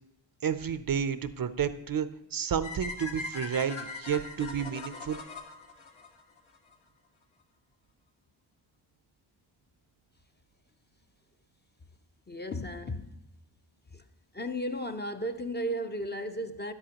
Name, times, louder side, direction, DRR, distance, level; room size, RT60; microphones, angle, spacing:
voice 1, 0.4-5.2, right 7 dB, 50° right, 0.5 m, -31 dB
sound 1, 2.6-6.8, left 3 dB, 85° left, 1.4 m, -41 dB
voice 2, 12.3-13.2 13.9-14.0 14.3-16.7, equal, 20° left, 0.5 m, -34 dB
12.5 x 10.0 x 2.9 m
wide cardioid pair, 85°, 48 cm